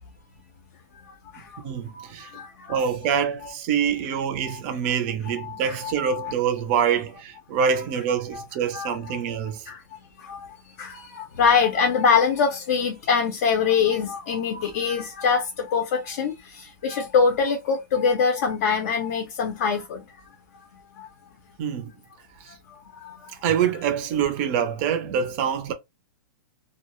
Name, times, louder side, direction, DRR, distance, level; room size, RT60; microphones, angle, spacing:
voice 1, 1.6-2.3 2.7-9.7 21.6-21.9 22.4-22.5 23.4-25.7, right 7 dB, 30° right, 0.5 m, -25 dB
voice 2, 2.3-2.8 4.5-4.6 5.4-6.3 8.3-8.4 8.7-9.3 9.7-9.8 10.2-10.5 10.8-20.1 21.0-21.1 22.9-23.1, left 6 dB, 45° left, 0.5 m, -24 dB
2.2 x 2.0 x 2.9 m
hypercardioid pair, 165°, 11 cm